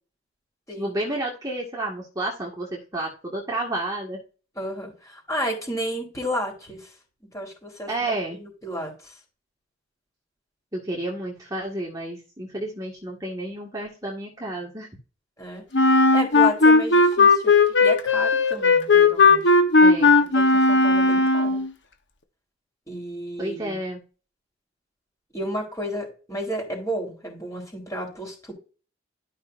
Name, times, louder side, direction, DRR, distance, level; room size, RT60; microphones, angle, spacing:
voice 1, 0.8-4.2 7.9-8.4 10.7-14.9 19.8-20.2 23.4-24.0, right 1 dB, 20° right, -3 dB, 1.8 m, -31 dB
voice 2, 4.6-6.8 7.3-7.9 8.3-9.1 15.4-17.5 17.8-19.5 20.3-21.6 22.9-23.8 25.3-28.5, equal, 15° left, 0 dB, 3.9 m, -32 dB
Wind instrument woodwind instrument, 15.7-21.7, left 3 dB, 70° left, 1.1 m, -17 dB
12.5 x 5.6 x 2.6 m, 0.34 s
head